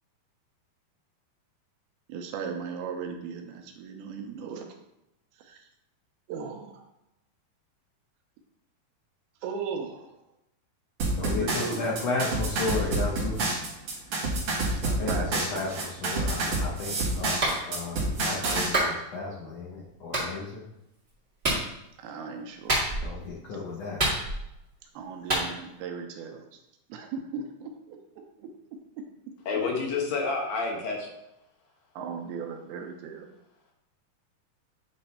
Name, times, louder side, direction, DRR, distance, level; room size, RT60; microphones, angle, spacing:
voice 1, 2.1-4.7 5.4-5.7 6.3-6.9 9.4-10.1 11.4-11.8 15.0-15.7 22.0-22.8 24.8-26.6 26.9-29.1 32.0-33.3, right 6 dB, 80° right, 3 dB, 2.7 m, -37 dB
sound 1, 11.0-18.7, right 2 dB, 50° right, 2.3 m, -28 dB
voice 2, 11.1-13.5 14.8-17.4 17.7-20.7 23.0-24.0, left 3 dB, 85° left, -4 dB, 1.4 m, -33 dB
Clapping, 17.4-17.6 18.7-18.9 20.1-20.3 21.4-21.7 22.7-23.2 24.0-24.6 25.3-25.5, right 1 dB, 30° right, 1.0 m, -26 dB
voice 3, 29.5-31.1, left 4 dB, 70° left, 0 dB, 2.6 m, -29 dB
9.1 x 3.2 x 4.2 m, 0.87 s
omnidirectional pair, 4.5 m